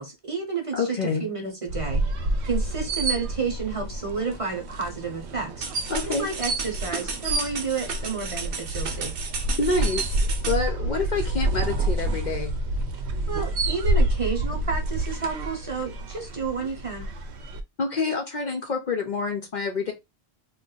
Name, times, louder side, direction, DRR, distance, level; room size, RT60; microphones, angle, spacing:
voice 1, 0.0-2.0 2.4-5.7 6.0-9.1 13.3-17.1, right 5 dB, 35° right, 0.9 m, -31 dB
voice 2, 0.7-1.3 5.9-6.3 9.6-10.2 10.5-12.6 17.8-19.9, left 4 dB, 50° left, 0.7 m, -27 dB
sound 1, 1.7-17.6, right 2 dB, 90° right, 0.9 m, -28 dB
sound 2, 5.6-10.6, right 5 dB, 60° right, 0.9 m, -34 dB
2.5 x 2.4 x 3.8 m
omnidirectional pair, 1.1 m